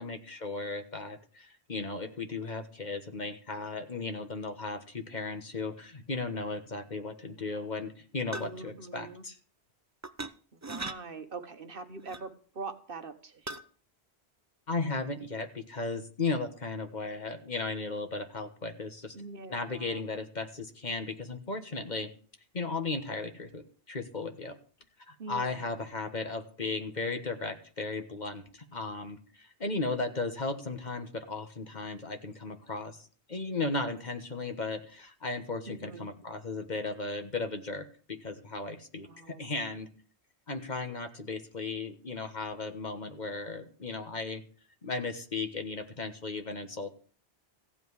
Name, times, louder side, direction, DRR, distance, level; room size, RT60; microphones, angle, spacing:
voice 1, 0.0-9.4 14.7-19.1 19.5-22.1 22.5-24.5 25.1-33.0 33.3-39.9 40.5-44.4 44.8-46.9, left 3 dB, 45° left, 6 dB, 1.4 m, -36 dB
sound 1, 8.3-8.6 10.0-10.3 10.6-11.0 12.1-12.3 13.5-13.6, right 2 dB, 20° right, 0.5 m, -38 dB
voice 2, 8.3-9.2 10.7-13.6 19.1-20.0 25.2-25.7 35.7-36.1 39.0-39.5, right 3 dB, 55° right, 9 dB, 1.3 m, -43 dB
15.5 x 5.3 x 9.5 m, 0.40 s
omnidirectional pair, 1.1 m